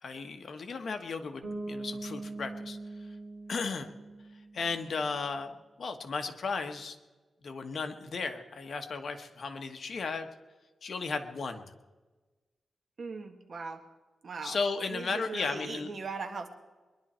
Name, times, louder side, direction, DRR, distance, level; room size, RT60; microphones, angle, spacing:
voice 1, 0.0-2.8 3.5-3.9 4.5-7.0 7.4-10.3 10.8-11.7 14.4-15.9, left 4 dB, 55° left, 6 dB, 1.2 m, -35 dB
Bass guitar, 1.4-5.1, right 2 dB, 35° right, 5.9 m, -42 dB
voice 2, 13.0-13.9 14.2-16.5, right 4 dB, 50° right, 5 dB, 1.7 m, -40 dB
22.5 x 11.5 x 4.4 m, 1.2 s
wide cardioid pair, 130°, 0 cm